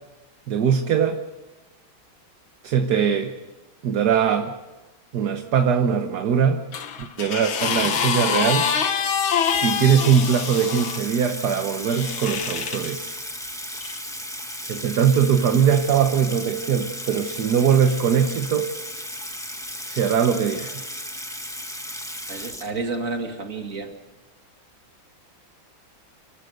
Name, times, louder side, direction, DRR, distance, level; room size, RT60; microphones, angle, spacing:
voice 1, 0.5-1.2 2.6-3.3 3.8-4.5 5.1-6.6 7.0-8.7 9.6-13.2 14.7-18.7 19.9-20.8, right 7 dB, 55° right, 6 dB, 1.5 m, -21 dB
sound 1, 6.7-11.0 11.9-12.9 13.8-14.0, left 7 dB, 85° left, 2.2 m, -25 dB
Water tap faucet / Sink (filling or washing), 9.4-23.2, equal, ahead, 1.0 m, -35 dB
voice 2, 22.3-23.9, right 3 dB, 40° right, 4 dB, 2.7 m, -30 dB
29.0 x 13.0 x 8.0 m, 1.1 s
omnidirectional pair, 2.2 m